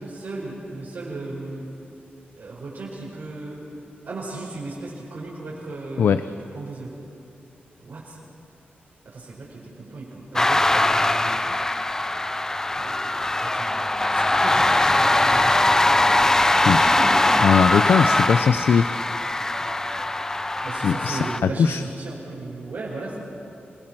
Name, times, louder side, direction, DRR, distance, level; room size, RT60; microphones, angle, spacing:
voice 1, 0.0-1.7 2.4-3.6 4.0-6.2 6.5-6.9 7.8-8.2 9.0-11.4 12.8-17.2 20.6-23.2, right 3 dB, 60° right, -6 dB, 4.9 m, -36 dB
sound 1, 10.4-21.4, left 2 dB, 15° left, 0.5 m, -21 dB
voice 2, 17.4-18.9 20.8-21.8, left 7 dB, 85° left, 11 dB, 0.5 m, -20 dB
28.0 x 20.0 x 6.2 m, 2.6 s
wide cardioid pair, 165°, 4 cm